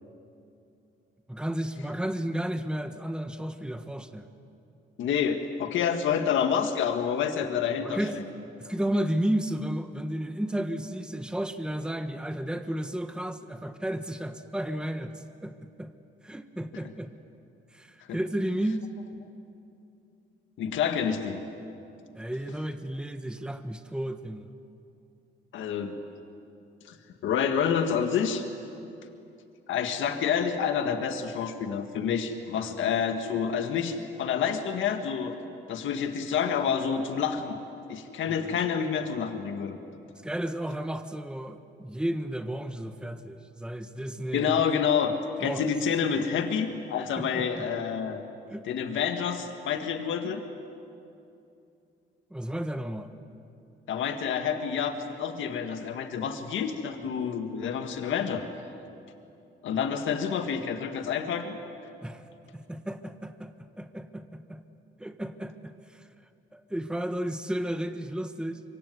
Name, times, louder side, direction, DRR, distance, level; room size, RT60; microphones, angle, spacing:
voice 1, 1.3-4.3 7.8-8.2 8.6-15.9 16.2-17.1 17.7-18.9 22.1-24.5 32.6-32.9 38.3-38.6 40.2-44.6 45.4-45.6 47.2-47.7 48.5-48.7 52.3-53.1 62.0-62.2 62.5-64.6 65.0-66.1 66.5-68.6, right 1 dB, 5° right, 8 dB, 1.4 m, -33 dB
voice 2, 5.0-8.0 18.1-18.2 20.6-21.4 25.5-26.0 26.9-27.0 27.2-28.4 29.7-35.3 35.7-37.6 37.9-39.8 44.3-45.1 45.4-48.2 48.7-50.4 53.9-58.4 59.6-61.6, left 7 dB, 75° left, 6 dB, 1.8 m, -28 dB
25.0 x 23.5 x 9.6 m, 2.7 s
cardioid pair, 90°, 20 cm